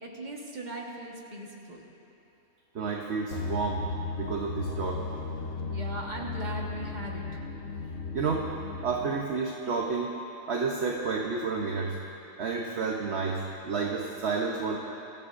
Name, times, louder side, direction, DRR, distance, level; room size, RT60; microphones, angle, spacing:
voice 1, 0.0-2.0 5.7-7.2, right 1 dB, 35° right, -2 dB, 1.7 m, -39 dB
voice 2, 2.7-3.9 4.2-5.1 8.1-8.5 8.8-10.1 10.5-12.0 12.4-14.8, right 4 dB, 55° right, 0 dB, 1.1 m, -30 dB
sound 1, 3.3-9.1, left 4 dB, 65° left, 1.2 m, -35 dB
23.5 x 14.5 x 2.6 m, 2.9 s
omnidirectional pair, 1.4 m